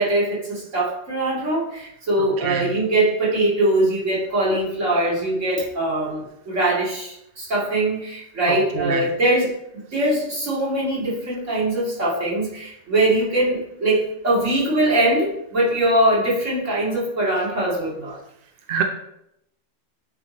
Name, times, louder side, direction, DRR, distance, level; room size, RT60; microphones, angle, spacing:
voice 1, 0.0-9.5 9.9-18.2, right 1 dB, 75° right, -7 dB, 2.7 m, -22 dB
voice 2, 8.5-9.0 18.7-18.8, right 6 dB, 55° right, 4 dB, 0.8 m, -25 dB
8.7 x 3.3 x 4.0 m, 0.79 s
omnidirectional pair, 1.3 m